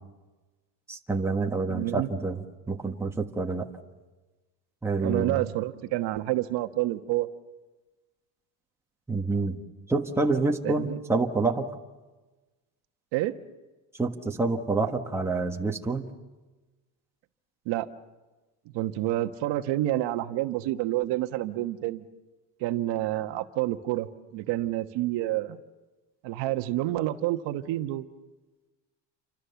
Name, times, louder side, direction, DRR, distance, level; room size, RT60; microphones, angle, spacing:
voice 1, 0.9-3.7 4.8-5.4 9.1-9.6 9.9-11.7 14.0-16.0, right 3 dB, 5° right, 1 dB, 1.4 m, -27 dB
voice 2, 1.7-2.1 5.0-7.3 10.6-11.0 13.1-13.3 17.7-17.9 18.7-22.0 22.6-25.6 26.2-28.0, right 15 dB, 60° right, 8 dB, 1.3 m, -28 dB
29.5 x 25.0 x 7.0 m, 1.2 s
cardioid pair, 155°, 47 cm